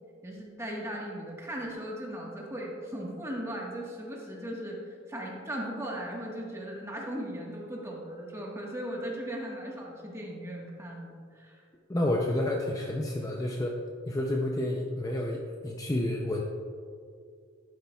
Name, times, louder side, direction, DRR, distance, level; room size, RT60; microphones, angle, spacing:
voice 1, 0.2-11.6, equal, 15° right, -2 dB, 1.4 m, -38 dB
voice 2, 11.9-13.8 14.1-16.4, left 1 dB, 15° left, 0 dB, 0.5 m, -30 dB
11.5 x 9.4 x 2.3 m, 2.3 s
head